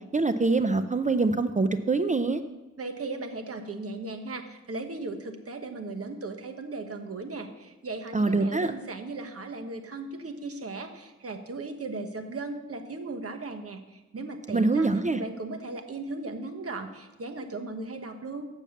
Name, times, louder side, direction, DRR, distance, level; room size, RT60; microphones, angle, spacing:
voice 1, 0.1-2.4 8.1-8.7 14.5-15.2, right 3 dB, 25° right, 10 dB, 0.4 m, -24 dB
voice 2, 2.8-14.9 15.1-18.5, right 3 dB, 50° right, 5 dB, 1.1 m, -37 dB
7.0 x 7.0 x 7.1 m, 1.1 s
wide cardioid pair, 90°, 29 cm